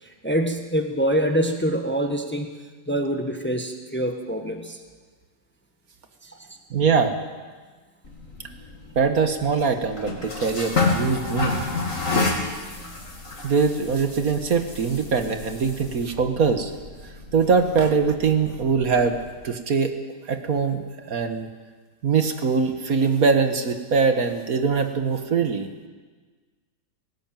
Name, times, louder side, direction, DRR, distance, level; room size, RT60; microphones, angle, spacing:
voice 1, 0.0-2.5 2.9-4.8 6.2-6.6, equal, 5° left, 5 dB, 1.4 m, -25 dB
voice 2, 6.7-7.2 8.9-11.6 13.4-16.7 17.3-19.2 19.4-19.9 20.3-21.5 22.0-25.7, right 5 dB, 60° right, 7 dB, 1.9 m, -22 dB
sound 1, 8.0-19.3, left 3 dB, 50° left, 3.3 m, -30 dB
19.5 x 17.5 x 9.1 m, 1.4 s
omnidirectional pair, 1.7 m